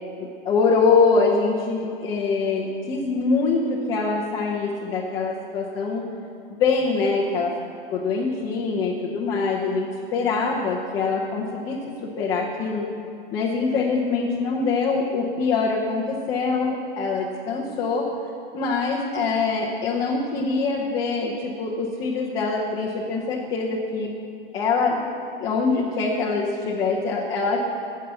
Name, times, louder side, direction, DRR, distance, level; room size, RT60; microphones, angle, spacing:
voice 1, 0.2-6.0 6.5-7.5 7.9-11.8 12.2-12.9 13.3-18.1 18.5-24.1 24.5-25.0 25.4-27.6, left 4 dB, 15° left, -4 dB, 0.6 m, -24 dB
14.5 x 5.7 x 7.7 m, 2.6 s
supercardioid pair, 175°, 29 cm